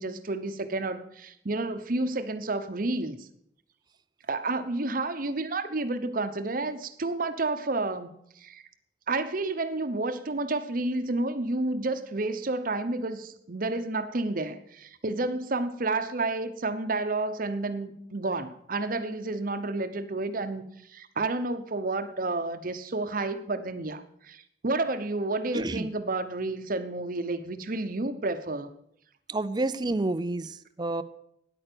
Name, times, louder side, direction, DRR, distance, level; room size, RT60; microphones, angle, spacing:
voice 1, 0.0-3.3 4.3-8.6 9.1-20.6 20.9-28.7, right 2 dB, 50° right, 10 dB, 0.8 m, -30 dB
voice 2, 25.5-25.9 29.3-31.0, right 2 dB, 25° right, 13 dB, 0.5 m, -29 dB
9.9 x 8.9 x 6.8 m, 0.74 s
head